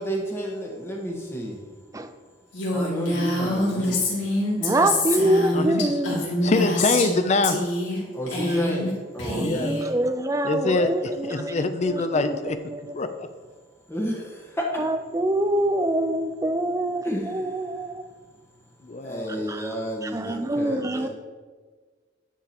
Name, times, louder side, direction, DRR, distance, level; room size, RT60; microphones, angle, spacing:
voice 1, 0.0-1.6 2.7-4.0 8.1-9.8 13.9-14.7 17.0-17.5 19.0-21.1, equal, 15° left, -2 dB, 1.3 m, -31 dB
Female speech woman speaking, 2.5-7.2 7.4-8.0 8.3-8.9 9.2-9.8, left 1 dB, 85° left, 2.5 m, -26 dB
voice 2, 4.6-6.2 9.3-11.6 11.9-12.4 12.7-12.8 14.8-18.0 19.5-19.7 20.0-21.1, right 1 dB, 15° right, 8 dB, 0.4 m, -25 dB
voice 3, 5.5-7.6 9.4-9.8 10.4-12.6 12.9-13.1 18.8-19.5, left 3 dB, 35° left, 9 dB, 0.5 m, -25 dB
9.9 x 7.0 x 2.9 m, 1.5 s
head